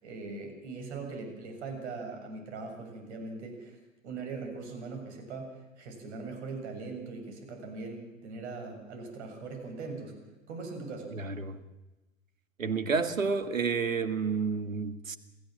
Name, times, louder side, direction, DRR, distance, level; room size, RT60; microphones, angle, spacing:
voice 1, 0.0-3.8 4.0-10.1 10.5-11.1, right 4 dB, 55° right, 7.0 m, -40 dB
voice 2, 11.1-11.6 12.6-15.2, right 5 dB, 80° right, 1.8 m, -30 dB
27.5 x 16.0 x 7.6 m
figure-of-eight pair, 95°, 40 cm